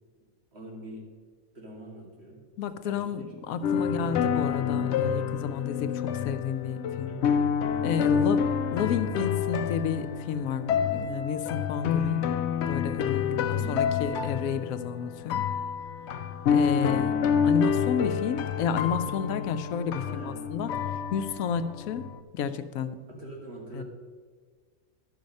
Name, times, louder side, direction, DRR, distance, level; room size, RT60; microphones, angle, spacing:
voice 1, 0.5-1.0 1.5-2.4 2.8-3.0 3.8-4.1 7.1-7.4 8.0-8.3 13.3-13.9 16.5-17.1 20.0-20.5 23.1-23.8, right 2 dB, 50° right, -2 dB, 2.1 m, -43 dB
voice 2, 2.6-7.1 7.8-8.4 8.7-12.3 12.6-15.5 16.5-17.2 17.4-20.7 21.1-22.1 22.3-23.0 23.7-23.8, left 7 dB, 85° left, 11 dB, 1.0 m, -31 dB
sound 1, 3.6-22.2, left 7 dB, 65° left, 0.7 m, -28 dB
11.5 x 5.6 x 5.3 m, 1.6 s
omnidirectional pair, 1.4 m